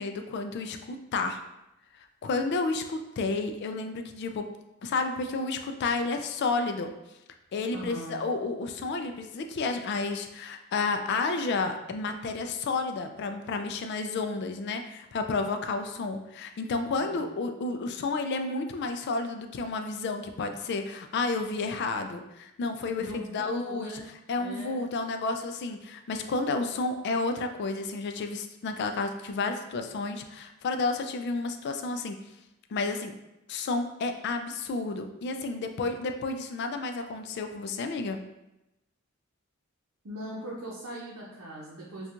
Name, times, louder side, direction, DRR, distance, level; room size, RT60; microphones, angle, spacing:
voice 1, 0.0-1.4 2.2-4.5 4.8-6.9 7.5-23.1 23.3-23.9 24.3-32.2 32.7-33.1 33.5-38.2, left 3 dB, 50° left, 6 dB, 0.3 m, -31 dB
voice 2, 7.7-8.2 17.0-17.2 23.0-24.1 24.4-24.8 40.0-42.1, equal, 85° right, -6 dB, 0.7 m, -40 dB
4.3 x 2.3 x 2.5 m, 0.93 s
head